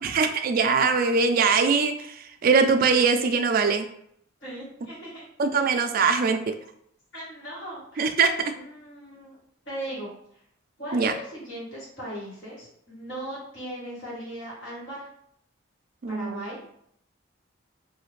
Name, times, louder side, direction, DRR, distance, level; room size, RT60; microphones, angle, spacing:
voice 1, 0.0-3.9 5.4-6.4 8.0-8.5 10.9-11.1 16.0-16.5, right 5 dB, 45° right, 7 dB, 0.3 m, -22 dB
voice 2, 4.4-5.3 5.5-5.6 7.1-8.1 8.5-9.4 9.6-10.1 10.8-15.1 16.1-16.6, right 1 dB, 60° left, -6 dB, 1.4 m, -38 dB
2.7 x 2.4 x 3.1 m, 0.70 s
head